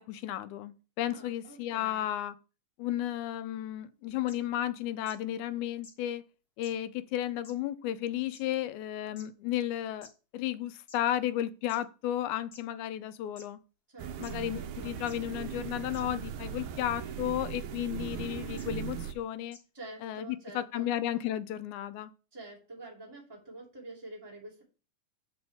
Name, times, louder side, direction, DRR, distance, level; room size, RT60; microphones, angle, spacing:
voice 1, 0.0-2.4 2.8-6.3 6.6-13.6 14.2-19.6 20.0-22.1, left 12 dB, 85° left, 2.0 m, -33 dB
voice 2, 1.1-2.1 13.9-14.9 19.7-20.9 22.3-24.6, right 2 dB, 10° right, 2.4 m, -47 dB
sound 1, 4.3-4.4 5.1-5.2 5.8-5.9 6.6-6.7 7.4-7.5 8.3-8.4 9.2-9.3 10.0-10.1 10.9-11.0 11.7-11.8 12.5-12.6 13.4-13.5 14.2-14.3 15.1-15.2 15.9-16.0 17.3-17.5 18.6-18.7 19.5-19.6, left 4 dB, 40° left, 1.5 m, -51 dB
sound 2, 14.0-19.1, right 9 dB, 85° right, 2.2 m, -39 dB
7.9 x 6.9 x 3.4 m
omnidirectional pair, 3.4 m